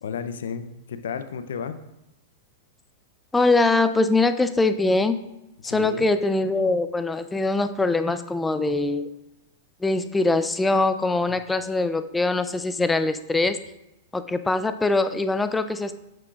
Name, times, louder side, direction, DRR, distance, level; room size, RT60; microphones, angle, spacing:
voice 1, 0.0-1.8 5.6-6.1, left 7 dB, 80° left, 10 dB, 0.5 m, -33 dB
voice 2, 3.3-5.2 5.6-9.1 9.8-13.6 14.1-16.0, left 2 dB, 10° left, 10 dB, 0.4 m, -22 dB
7.5 x 6.1 x 2.4 m, 0.90 s
hypercardioid pair, 125°, 0 cm